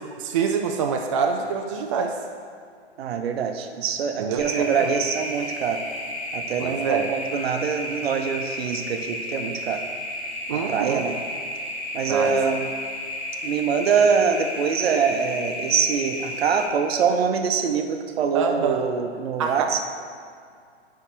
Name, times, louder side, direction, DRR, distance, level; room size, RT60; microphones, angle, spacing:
voice 1, 0.2-2.2 4.2-4.9 6.6-7.1 10.5-11.0 12.1-12.4 18.3-18.9 19.4-19.8, right 6 dB, 30° right, 2 dB, 0.4 m, -26 dB
voice 2, 3.0-5.8 6.3-9.8 10.7-11.2 11.9-12.7 13.4-19.8, right 6 dB, 60° right, 6 dB, 0.8 m, -24 dB
sound 1, 4.4-16.7, left 1 dB, 45° left, 1.9 m, -33 dB
9.8 x 4.7 x 4.5 m, 2.2 s
hypercardioid pair, 135°, 35 cm